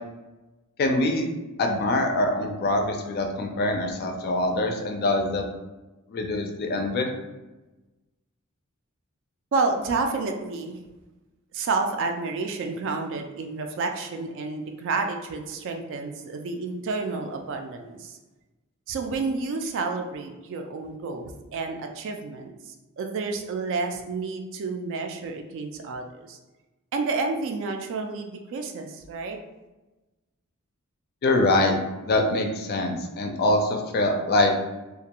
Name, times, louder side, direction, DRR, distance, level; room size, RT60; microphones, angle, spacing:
voice 1, 0.8-1.3 1.6-5.5 6.1-7.1 31.2-31.8 32.0-34.5, left 2 dB, 45° left, 4 dB, 0.4 m, -24 dB
voice 2, 9.5-10.8 11.5-18.2 18.9-22.5 23.0-26.4 26.9-29.4, right 3 dB, 60° right, 5 dB, 0.3 m, -30 dB
2.4 x 2.2 x 2.8 m, 1.1 s
head